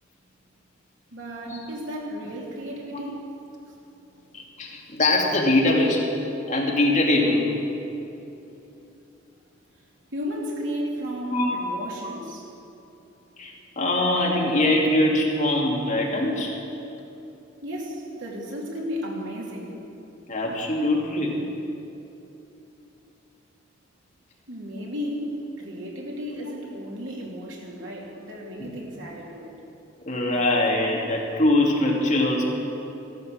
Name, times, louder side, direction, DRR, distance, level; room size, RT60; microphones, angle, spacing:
voice 1, 1.1-3.3 8.7-8.8 10.1-12.5 17.6-19.8 24.5-29.6, equal, 85° right, -2 dB, 2.8 m, -34 dB
voice 2, 4.3-6.1 6.5-7.5 11.3-11.6 13.4-16.5 20.3-21.4 24.7-24.9 28.6-28.7 30.1-32.4, left 1 dB, 40° left, -2 dB, 2.7 m, -22 dB
15.5 x 13.0 x 6.5 m, 2.9 s
head